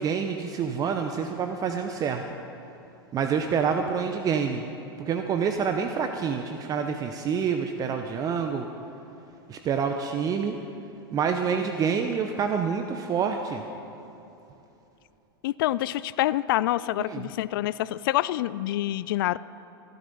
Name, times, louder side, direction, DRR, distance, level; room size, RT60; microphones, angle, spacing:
voice 1, 0.0-2.2 3.1-4.6 5.1-8.7 9.5-10.6 11.1-13.6 17.1-17.3, right 6 dB, 30° right, 6 dB, 0.8 m, -27 dB
voice 2, 15.4-19.4, left 15 dB, 65° left, 18 dB, 0.4 m, -26 dB
15.5 x 12.0 x 5.4 m, 2.9 s
hypercardioid pair, 110°, 13 cm